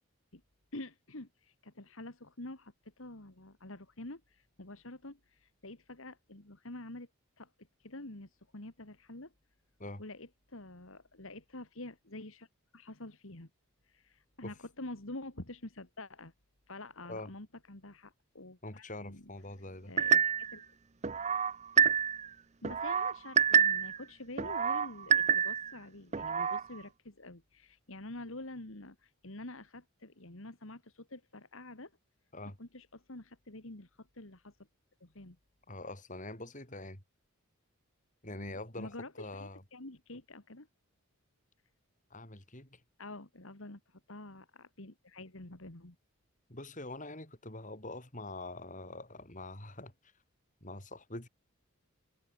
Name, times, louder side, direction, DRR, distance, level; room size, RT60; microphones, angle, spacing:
voice 1, 0.7-7.1 7.4-7.5 7.8-9.3 10.0-12.5 12.7-13.5 13.8-16.3 16.7-19.3 19.9-20.6 22.6-31.9 32.4-34.6 35.0-35.4 38.4-40.7 43.0-46.0, left 2 dB, 65° left, 2.4 m, -47 dB
voice 2, 18.6-19.9 32.3-32.6 35.7-37.0 38.2-39.6 42.1-42.8 46.5-49.9 50.6-51.3, left 2 dB, 35° left, 6.0 m, -44 dB
sound 1, 20.0-20.6 21.0-22.3 22.6-24.0 24.4-25.7 26.1-26.6, right 7 dB, 30° right, 0.5 m, -27 dB
head